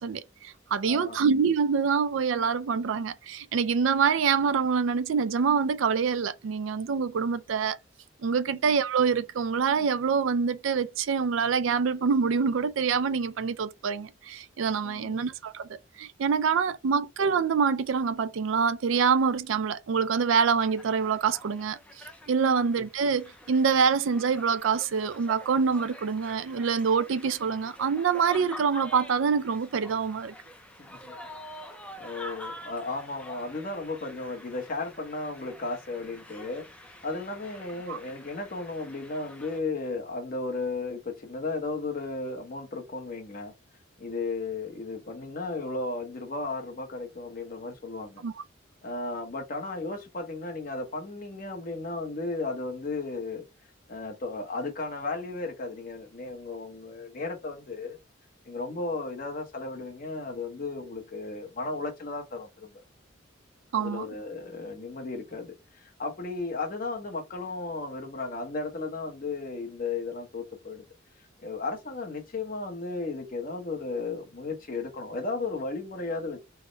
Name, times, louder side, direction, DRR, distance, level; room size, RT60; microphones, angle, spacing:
voice 1, 0.0-7.8 8.2-15.7 16.0-21.8 22.3-30.3 37.9-38.0 48.2-48.3 63.7-64.0, right 6 dB, 80° right, 0.4 m, -25 dB
voice 2, 0.8-1.2 8.4-8.6 14.8-15.2 22.4-22.6 30.8-31.2 31.5-31.6 32.0-43.5 44.0-48.2 48.8-53.4 53.9-58.0 58.4-62.8 63.7-70.8 71.4-76.4, left 3 dB, 45° left, 0.9 m, -35 dB
sound 1, 20.6-39.6, left 1 dB, 5° left, 0.4 m, -47 dB
3.4 x 2.1 x 3.8 m
head